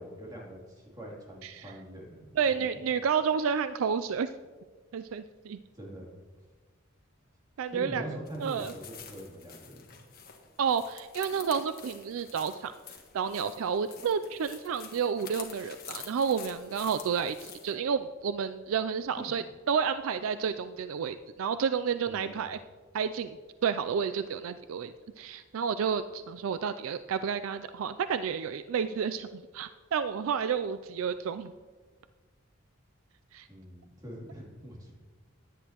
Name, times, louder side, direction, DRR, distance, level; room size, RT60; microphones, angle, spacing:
voice 1, 0.0-2.8 5.7-6.1 7.7-10.0 19.1-19.4 22.0-22.5 33.5-34.9, equal, 20° right, -4 dB, 2.9 m, -44 dB
voice 2, 2.4-4.3 4.9-5.6 7.6-8.0 8.4-8.7 10.6-12.7 13.1-22.6 22.9-23.4 23.6-31.5 33.3-33.5, right 6 dB, 75° right, 11 dB, 0.4 m, -30 dB
sound 1, 8.3-17.7, left 7 dB, 45° left, 1.4 m, -48 dB
16.0 x 10.0 x 2.9 m, 1.4 s
head